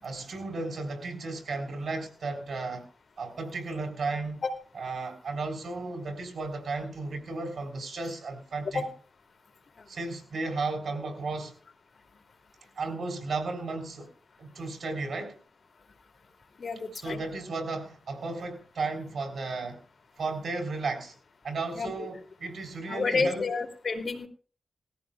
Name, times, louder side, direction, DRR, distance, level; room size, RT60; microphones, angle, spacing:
voice 1, 0.0-2.9 3.2-4.4 4.8-8.8 9.9-11.5 12.8-14.1 14.4-15.4 16.9-19.8 20.2-21.1 21.4-23.5, right 3 dB, 75° right, 3.7 m, -34 dB
voice 2, 16.6-17.2 21.8-22.1 22.9-24.3, left 4 dB, 65° left, 2.5 m, -30 dB
19.0 x 14.5 x 2.2 m
wide cardioid pair, 85°, 0 cm